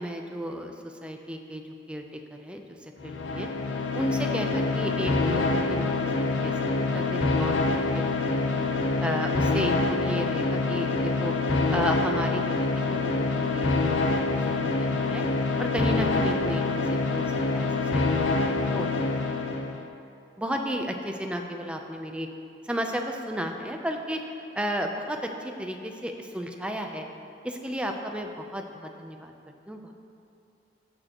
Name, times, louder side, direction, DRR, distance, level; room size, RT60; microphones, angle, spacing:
voice 1, 0.0-3.5 3.9-5.9 6.2-8.6 9.0-11.3 11.7-15.2 15.6-19.8 20.4-22.3 22.6-27.1 27.4-29.3 29.7-29.9, equal, 5° right, 3 dB, 0.6 m, -34 dB
sound 1, 3.0-19.8, left 3 dB, 90° left, 0.7 m, -26 dB
15.5 x 6.5 x 3.0 m, 2.5 s
head